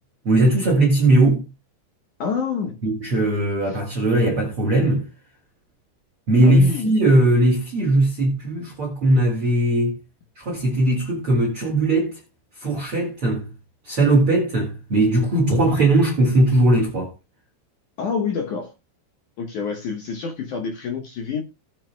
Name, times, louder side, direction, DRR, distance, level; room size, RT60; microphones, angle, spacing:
voice 1, 0.2-1.5 2.8-5.1 6.3-10.0 10.4-12.2 12.6-13.5 13.8-17.1, right 1 dB, 40° right, 2.5 m, -19 dB
voice 2, 2.2-2.8 6.4-6.9 18.0-18.7 19.4-21.4, left 5 dB, 65° left, 2.2 m, -27 dB
18.5 x 7.8 x 2.3 m
omnidirectional pair, 4.9 m